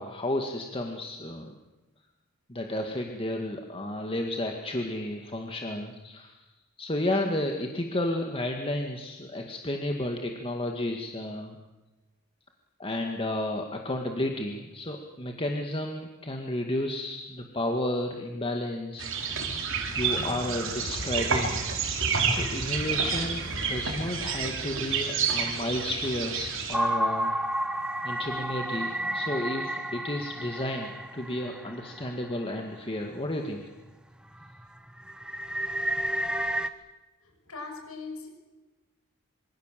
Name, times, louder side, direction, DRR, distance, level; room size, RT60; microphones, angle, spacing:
voice 1, 0.0-1.5 2.5-6.4 6.8-11.6 12.8-19.1 19.7-21.6 22.3-27.3 28.0-33.6, left 1 dB, 25° left, 3 dB, 2.0 m, -32 dB
sound 1, 19.0-26.8, right 5 dB, 60° right, 4.1 m, -29 dB
sound 2, 19.8-24.6, right 1 dB, 85° right, 5.9 m, -42 dB
sound 3, 26.7-32.5 33.0-33.1 33.7-33.9 34.3-36.7, right 1 dB, 5° right, 1.2 m, -31 dB
voice 2, 37.2-38.3, left 4 dB, 75° left, 4 dB, 6.5 m, -40 dB
26.5 x 25.0 x 7.6 m, 1.1 s
head